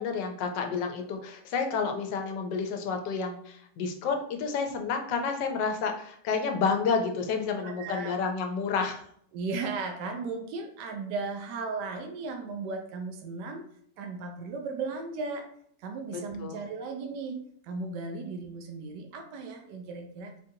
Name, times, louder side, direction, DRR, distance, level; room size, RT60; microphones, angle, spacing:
voice 1, 0.0-9.0 16.1-16.6, left 5 dB, 90° left, 4 dB, 1.3 m, -30 dB
voice 2, 7.6-8.3 9.3-13.6 14.0-15.5 15.8-17.4 17.6-20.3, right 4 dB, 80° right, 4 dB, 1.2 m, -36 dB
4.5 x 2.5 x 2.7 m, 0.65 s
omnidirectional pair, 1.8 m